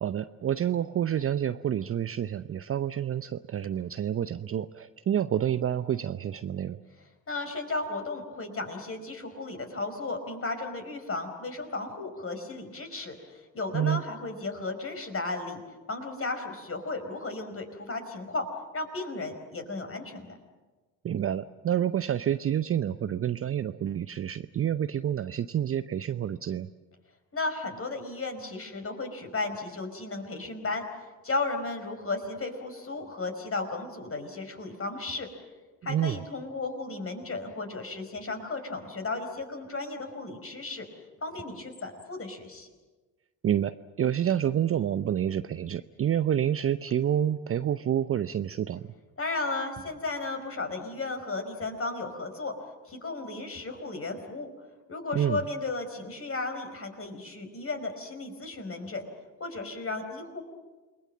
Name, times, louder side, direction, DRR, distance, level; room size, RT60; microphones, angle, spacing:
voice 1, 0.0-6.8 13.7-14.0 21.0-26.7 35.9-36.2 43.4-48.9 55.1-55.4, right 10 dB, 30° right, 13 dB, 0.7 m, -28 dB
voice 2, 7.3-15.6 15.9-18.5 18.7-20.4 27.3-30.8 31.2-35.3 35.8-40.9 41.2-42.7 49.2-52.5 52.8-54.5 54.9-59.1 59.4-60.4, left 3 dB, 30° left, 5 dB, 5.1 m, -34 dB
29.0 x 21.0 x 7.7 m, 1.3 s
figure-of-eight pair, 55°, 46 cm